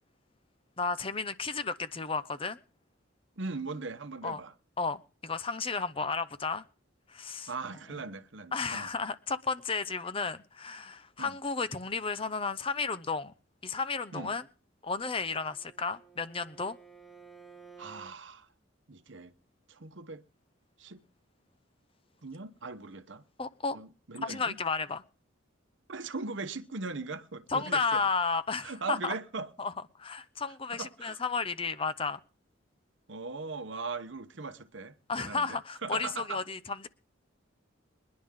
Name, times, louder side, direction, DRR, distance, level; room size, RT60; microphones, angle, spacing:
voice 1, 0.8-2.6 4.2-4.4 4.8-6.6 7.1-7.5 8.5-13.3 13.6-14.4 14.8-16.8 23.4-23.8 24.2-25.0 27.5-29.1 29.6-29.7 30.0-32.2 35.1-36.9, left 4 dB, 25° left, 0.7 m, -33 dB
voice 2, 3.4-4.5 7.5-8.9 11.2-11.4 14.1-14.3 17.8-18.5 18.9-19.3 19.7-20.2 20.8-21.0 22.2-23.2 23.7-24.6 25.9-28.0 28.6-29.5 30.7-31.2 33.1-36.4, right 3 dB, 65° right, 1.0 m, -39 dB
Bowed string instrument, 15.0-18.2, right 5 dB, ahead, 1.1 m, -54 dB
22.5 x 10.5 x 3.7 m
head